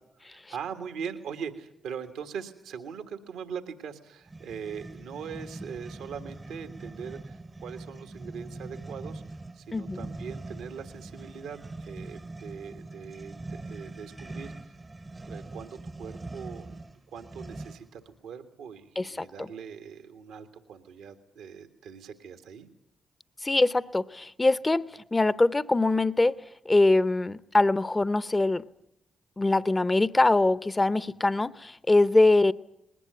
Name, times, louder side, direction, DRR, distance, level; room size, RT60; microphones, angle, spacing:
voice 1, 0.2-9.2 9.5-14.7 15.3-22.7 31.2-31.3, right 7 dB, 80° right, 7 dB, 1.6 m, -41 dB
sound 1, 4.3-18.0, right 2 dB, 30° right, 0.9 m, -42 dB
voice 2, 9.7-10.1 19.0-19.5 23.4-26.3 26.7-28.6 29.4-32.5, left 2 dB, 25° left, 17 dB, 0.8 m, -23 dB
20.5 x 18.0 x 9.3 m, 0.78 s
hypercardioid pair, 40°, 0 cm